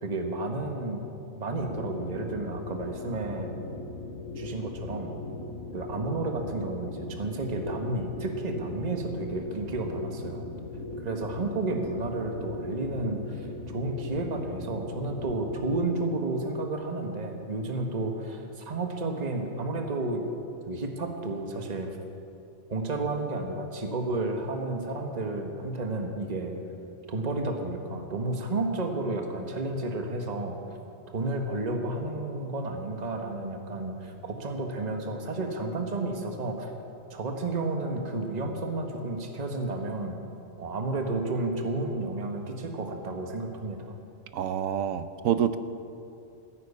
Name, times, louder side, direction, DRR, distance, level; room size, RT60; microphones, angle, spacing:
voice 1, 0.0-1.0 1.4-3.5 4.4-5.1 5.7-10.4 11.0-20.2 20.7-21.9 22.7-26.5 27.1-30.6 31.1-36.7 37.1-40.2 40.6-43.9, right 2 dB, 30° right, 3 dB, 1.4 m, -31 dB
sound 1, 1.6-15.8, left 2 dB, 50° left, 1.5 m, -39 dB
voice 2, 44.3-45.6, right 9 dB, 70° right, 12 dB, 1.0 m, -27 dB
15.0 x 10.5 x 8.4 m, 2.7 s
omnidirectional pair, 1.5 m